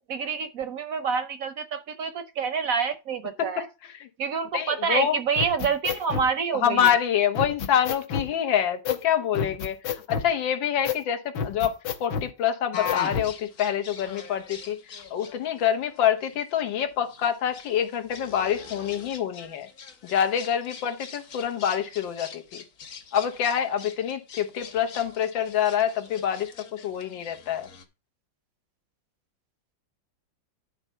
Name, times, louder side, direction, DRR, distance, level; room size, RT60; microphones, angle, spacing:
voice 1, 0.1-3.7 4.2-6.9, right 5 dB, 65° right, 0.9 m, -27 dB
voice 2, 4.5-5.2 6.6-14.8 15.1-19.7 20.0-22.6 23.1-27.7, left 9 dB, 90° left, 1.8 m, -26 dB
sound 1, 5.4-6.3 6.8-6.9 7.4-8.3 8.9-9.0 9.3-10.3 10.8-11.0 11.4-12.3 12.9-13.3, left 7 dB, 70° left, 1.5 m, -30 dB
sound 2, 12.7-27.8, left 7 dB, 50° left, 1.3 m, -42 dB
10.5 x 4.1 x 5.5 m
omnidirectional pair, 2.0 m